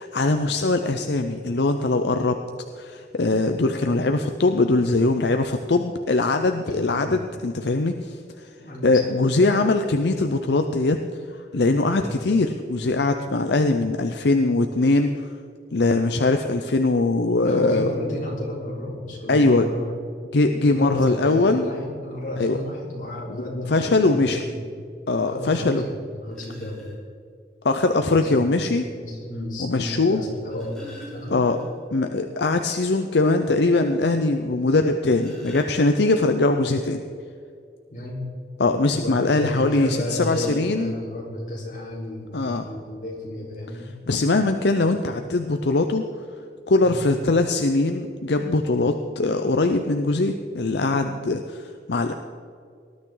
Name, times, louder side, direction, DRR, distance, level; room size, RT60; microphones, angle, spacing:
voice 1, 0.0-2.4 2.8-8.5 8.8-11.0 11.3-15.3 15.7-17.9 19.3-19.7 20.3-21.7 22.4-22.6 23.4-24.4 25.1-25.8 27.6-28.9 29.6-30.2 31.3-31.6 31.9-37.0 38.6-41.0 42.3-42.7 44.1-46.1 46.7-52.1, left 2 dB, 75° left, 6 dB, 0.7 m, -21 dB
voice 2, 8.6-9.1 12.0-12.2 17.4-19.9 20.6-24.6 25.3-26.9 27.9-28.4 28.8-31.5 37.9-38.3 38.9-43.9 46.8-47.0, left 1 dB, 45° left, -4 dB, 4.1 m, -32 dB
sound 1, 26.3-27.0 28.3-28.4 30.2-32.0 32.3-32.4 32.8-32.9 33.4-33.5 34.8-36.3 39.6-41.0 41.9-42.0 42.3-42.5, equal, 5° left, 3.5 m, -44 dB
19.5 x 12.0 x 3.9 m, 2.4 s
head